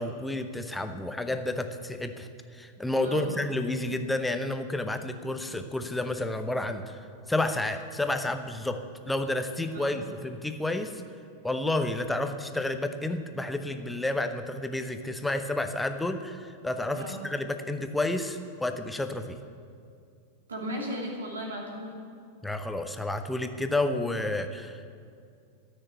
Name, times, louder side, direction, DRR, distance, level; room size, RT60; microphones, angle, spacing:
voice 1, 0.0-2.3 2.5-7.0 7.3-11.0 11.4-19.4 22.4-24.9, left 2 dB, 5° left, 8 dB, 0.8 m, -30 dB
voice 2, 3.0-3.4 9.7-10.0 16.9-17.2 20.5-22.0, equal, 70° right, -1 dB, 2.7 m, -36 dB
13.5 x 6.6 x 9.2 m, 2.4 s
figure-of-eight pair, 90°, 0 cm